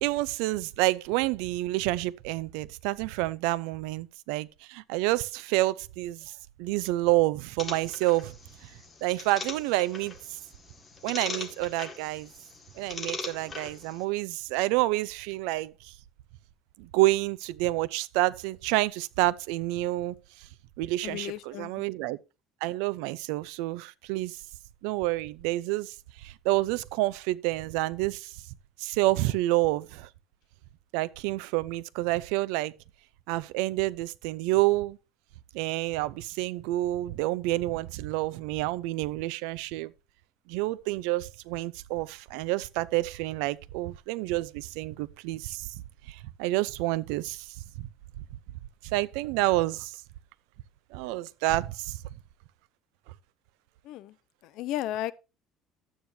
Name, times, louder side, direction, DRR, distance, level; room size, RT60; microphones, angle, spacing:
voice 1, 0.0-8.3 8.6-8.7 9.0-10.4 11.0-12.3 12.8-15.9 16.8-20.2 20.8-22.2 22.6-24.4 24.8-28.3 28.8-30.1 30.9-32.7 33.3-35.0 35.5-39.9 40.5-45.7 46.1-47.5 47.8-47.9 48.9-50.0 50.9-52.0, right 18 dB, 90° right, 0.6 m, -28 dB
sound 1, 7.6-14.0, left 4 dB, 20° left, 1.9 m, -41 dB
voice 2, 21.0-21.8 53.8-54.1 54.4-55.1, left 13 dB, 60° left, 0.8 m, -34 dB
12.0 x 8.8 x 2.8 m
cardioid pair, 150°, 0 cm